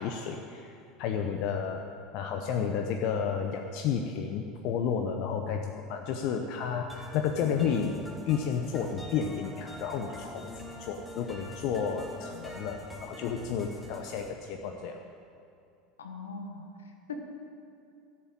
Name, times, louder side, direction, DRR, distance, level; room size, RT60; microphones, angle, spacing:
voice 1, 0.0-1.8 2.1-8.0 8.2-10.5 10.8-15.0, left 7 dB, 55° left, 4 dB, 0.9 m, -31 dB
sound 1, 6.9-14.3, equal, 5° left, 3.0 m, -45 dB
voice 2, 12.3-12.7 16.0-16.7 17.1-17.2, left 5 dB, 80° left, 4 dB, 1.5 m, -41 dB
13.5 x 7.6 x 8.9 m, 2.6 s
hypercardioid pair, 75°, 0 cm